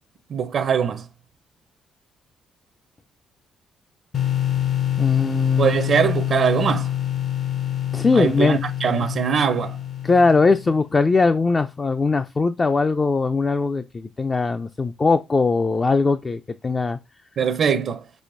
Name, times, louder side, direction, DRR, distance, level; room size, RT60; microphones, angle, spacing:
voice 1, 0.3-1.1 5.6-6.9 8.1-9.8 17.4-18.0, right 7 dB, 60° right, 0.5 m, -22 dB
sound 1, 4.1-11.0, left 11 dB, 55° left, 0.8 m, -26 dB
voice 2, 5.0-5.8 7.9-8.6 10.0-17.0, left 4 dB, 30° left, 0.4 m, -20 dB
6.2 x 2.7 x 2.5 m
cardioid pair, 90°, 0 cm